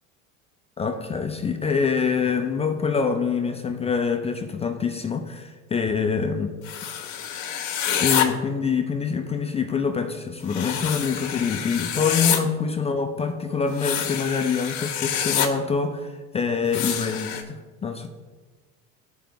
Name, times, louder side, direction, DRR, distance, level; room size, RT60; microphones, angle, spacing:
voice 1, 0.8-6.5 7.6-7.7 8.0-18.1, left 5 dB, 15° left, 5 dB, 0.5 m, -25 dB
sound 1, 6.6-8.2 10.5-12.4 13.7-15.5 16.7-17.4, left 9 dB, 45° left, 1.4 m, -27 dB
13.0 x 5.1 x 3.5 m, 1.3 s
supercardioid pair, 120°, 40 cm